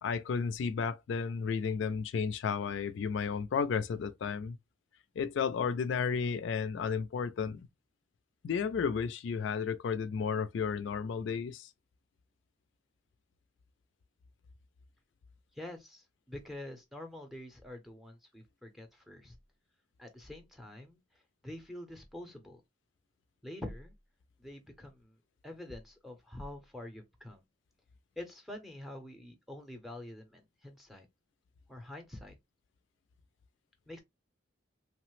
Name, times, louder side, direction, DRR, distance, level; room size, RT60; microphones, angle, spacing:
voice 1, 0.0-4.6 5.2-7.7 8.4-11.7, left 6 dB, 65° left, 0.3 m, -33 dB
voice 2, 15.5-19.4 20.0-22.6 23.4-23.9 24.4-25.2 25.4-27.4 28.2-31.1 31.7-32.4 33.9-34.0, left 1 dB, ahead, 0.6 m, -46 dB
3.1 x 2.0 x 3.0 m
head